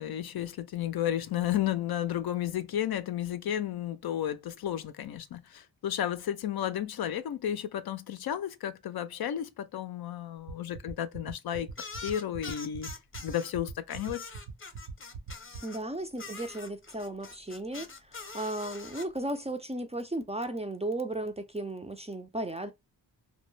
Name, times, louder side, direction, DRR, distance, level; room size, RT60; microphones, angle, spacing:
voice 1, 0.0-12.9 13.2-14.3, left 11 dB, 55° left, 0.5 m, -33 dB
sound 1, 10.5-15.6, right 6 dB, 90° right, 0.7 m, -41 dB
sound 2, 11.8-13.5 13.9-15.8 16.2-19.1, left 4 dB, 25° left, 0.8 m, -44 dB
voice 2, 15.6-22.7, right 1 dB, 15° right, 0.4 m, -35 dB
2.2 x 2.0 x 3.1 m
supercardioid pair, 40°, 45 cm